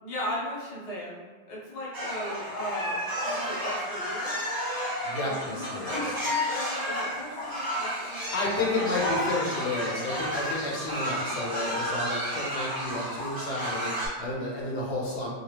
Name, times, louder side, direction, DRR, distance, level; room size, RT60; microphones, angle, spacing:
voice 1, 0.0-4.5 5.2-8.3 8.6-8.7 9.0-9.3, equal, 40° left, -5 dB, 0.6 m, -37 dB
sound 1, 1.9-14.1, equal, 20° right, 0.9 m, -32 dB
voice 2, 5.0-6.2 8.3-15.3, left 2 dB, 70° left, -4 dB, 1.0 m, -31 dB
2.8 x 2.2 x 3.2 m, 1.4 s
omnidirectional pair, 1.2 m